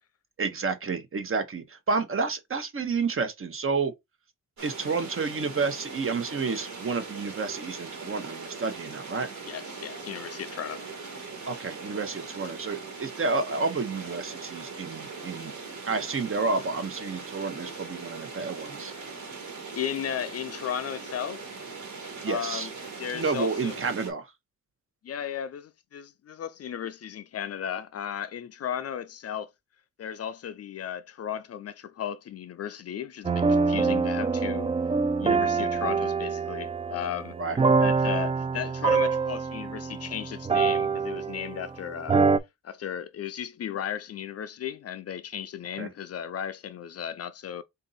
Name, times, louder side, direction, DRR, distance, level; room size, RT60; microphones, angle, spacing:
voice 1, 0.4-3.9 4.6-9.3 11.5-15.5 15.9-18.9 22.2-22.7 23.1-24.3 37.4-37.6 45.8-45.9, right 4 dB, 45° right, 1.0 m, -30 dB
sound 1, 4.6-24.1, right 4 dB, 65° right, 1.7 m, -40 dB
voice 2, 9.5-10.9 19.8-21.6 22.3-22.7 23.0-23.8 25.0-29.5 30.0-34.7 35.2-37.4 37.8-42.2 42.6-47.6, left 9 dB, 50° left, 0.4 m, -35 dB
sound 2, 33.2-41.7 42.1-42.4, right 4 dB, 20° right, 0.3 m, -25 dB
3.8 x 2.7 x 4.0 m
cardioid pair, 100°, 31 cm